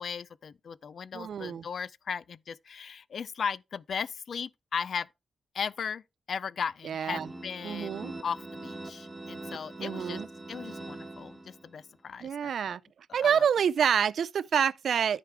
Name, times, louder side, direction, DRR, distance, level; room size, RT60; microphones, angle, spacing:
voice 1, 0.0-5.1 5.5-6.0 6.3-10.2 10.5-12.8 13.1-13.4, left 6 dB, 55° left, 0.4 m, -37 dB
voice 2, 1.1-1.7 6.8-7.3 7.6-8.1 9.8-10.3 12.2-12.8 13.1-15.2, right 8 dB, 65° right, 0.4 m, -27 dB
sound 1, 7.1-11.8, right 2 dB, 10° right, 1.5 m, -42 dB
13.5 x 4.9 x 3.5 m
wide cardioid pair, 125°, 0 cm